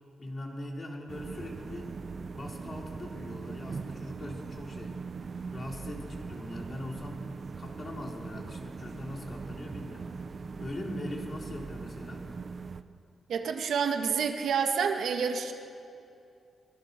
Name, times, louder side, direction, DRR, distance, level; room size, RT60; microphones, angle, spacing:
voice 1, 0.2-1.9 2.3-4.9 5.5-7.2 7.6-10.1 10.6-12.3, left 1 dB, 30° left, 0 dB, 3.5 m, -41 dB
sound 1, 1.1-12.8, right 4 dB, 40° right, 0.9 m, -41 dB
voice 2, 13.3-15.5, right 6 dB, 75° right, 4 dB, 1.9 m, -28 dB
24.5 x 23.0 x 6.9 m, 2.6 s
wide cardioid pair, 145°, 0 cm